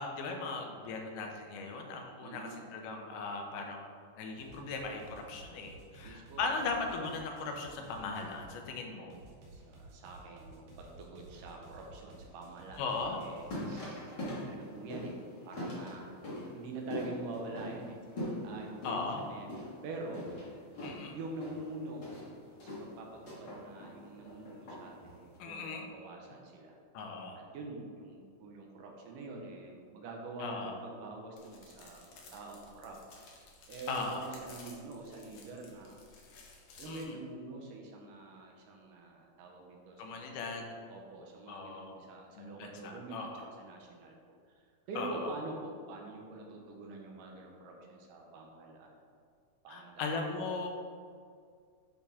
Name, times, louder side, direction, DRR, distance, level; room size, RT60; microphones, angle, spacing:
voice 1, 0.0-9.1 12.8-13.2 18.8-19.2 20.8-21.2 25.4-25.9 26.9-27.4 30.4-30.8 33.9-34.3 36.9-37.1 40.0-40.7 41.5-42.0 42.4-43.5 45.0-45.3 49.7-50.7, left 3 dB, 80° left, 3 dB, 2.3 m, -38 dB
voice 2, 2.2-2.7 6.0-6.5 8.9-9.2 9.5-15.2 15.4-16.1 16.5-18.0 18.4-20.2 21.1-22.0 22.6-26.8 27.5-33.4 33.7-36.0 36.8-40.6 40.9-44.2 44.6-49.0 49.6-50.1, right 2 dB, 90° right, 0 dB, 2.5 m, -46 dB
sound 1, 4.4-8.5 9.1-13.5, right 2 dB, 60° right, 1.6 m, -54 dB
sound 2, 13.1-25.4, left 1 dB, 40° left, 1.9 m, -43 dB
sound 3, 31.4-37.0, left 4 dB, 65° left, 1.8 m, -56 dB
9.7 x 4.2 x 3.5 m, 2.1 s
omnidirectional pair, 3.7 m